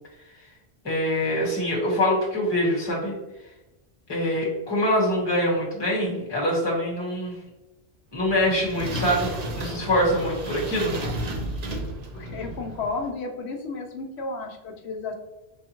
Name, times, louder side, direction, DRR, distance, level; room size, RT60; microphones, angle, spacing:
voice 1, 0.8-3.1 4.1-7.4 8.1-10.9, equal, 25° left, -4 dB, 1.2 m, -24 dB
sound 1, 8.1-13.1, right 1 dB, 50° right, 0.6 m, -33 dB
voice 2, 12.1-15.2, left 3 dB, 80° left, 4 dB, 0.9 m, -32 dB
4.7 x 2.3 x 2.9 m, 1.0 s
omnidirectional pair, 1.1 m